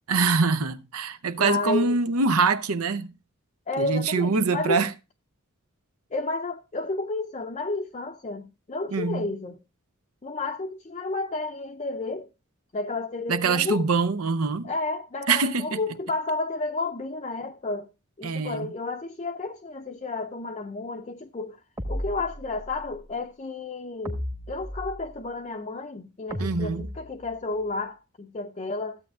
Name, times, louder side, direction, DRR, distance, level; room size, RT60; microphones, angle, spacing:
voice 1, 0.1-3.1 3.8-4.9 8.9-9.3 13.3-14.7 15.3-15.8 18.2-18.7 26.4-26.8, right 4 dB, 85° right, 0.7 m, -24 dB
voice 2, 1.4-2.0 3.7-4.8 6.1-9.6 10.2-12.3 12.7-13.9 14.6-17.9 18.2-21.6 21.9-24.2 24.5-29.0, left 3 dB, 30° left, 0.5 m, -31 dB
sound 1, 21.8-22.8 24.0-25.3 26.3-27.6, equal, 15° right, 1.1 m, -35 dB
15.0 x 8.3 x 2.3 m
head